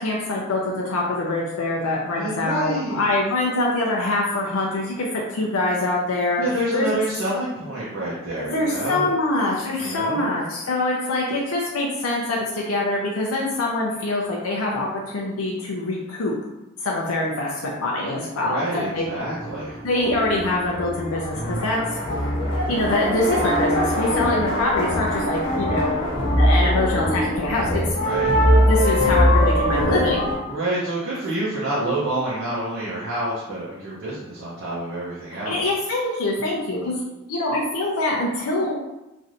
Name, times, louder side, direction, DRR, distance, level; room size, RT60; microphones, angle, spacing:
voice 1, 0.0-6.4 6.7-6.9 8.4-16.3 16.8-19.1 19.8-22.0 22.7-26.0 26.4-28.0 28.6-30.3 35.3-37.0 37.3-38.8, left 2 dB, 85° left, -3 dB, 0.5 m, -24 dB
voice 2, 2.1-3.0 6.4-9.1 9.7-10.3 18.4-19.9 28.0-28.3 30.5-35.6, right 1 dB, 60° right, -7 dB, 0.7 m, -28 dB
sound 1, 19.0-30.4, equal, 65° left, 1.0 m, -22 dB
3.1 x 2.6 x 2.6 m, 0.94 s
head